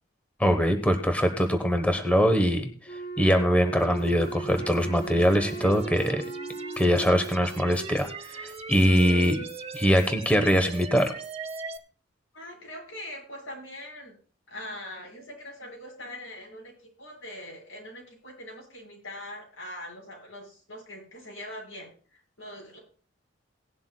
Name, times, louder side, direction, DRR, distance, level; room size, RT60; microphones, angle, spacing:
voice 1, 0.4-2.7 3.2-6.2 6.8-9.4 9.7-11.1, equal, 5° left, 6 dB, 1.0 m, -23 dB
Wind instrument woodwind instrument, 2.9-7.5, right 3 dB, 60° left, 2.6 m, -37 dB
sound 1, 3.8-11.8, right 4 dB, 30° right, 0.9 m, -40 dB
voice 2, 12.3-14.1 14.5-22.8, left 1 dB, 85° left, -1 dB, 7.2 m, -42 dB
18.0 x 11.5 x 2.2 m, 0.40 s
head